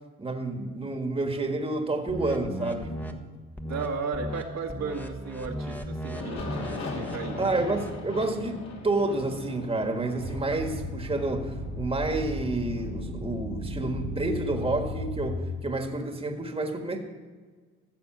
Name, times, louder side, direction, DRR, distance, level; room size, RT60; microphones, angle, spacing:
voice 1, 0.2-2.9 7.4-17.0, right 2 dB, 20° right, 4 dB, 1.7 m, -29 dB
sound 1, 2.1-3.1 3.6-3.9 4.1-4.4 4.7-8.0, equal, 5° left, 1.2 m, -36 dB
voice 2, 3.6-6.4 6.8-7.4, right 4 dB, 60° right, 1 dB, 1.7 m, -34 dB
Aircraft, 6.1-12.8, left 2 dB, 60° left, 2.9 m, -39 dB
sound 2, 10.2-15.3, left 1 dB, 85° left, 3.8 m, -35 dB
15.5 x 6.9 x 6.0 m, 1.4 s
cardioid pair, 90°, 30 cm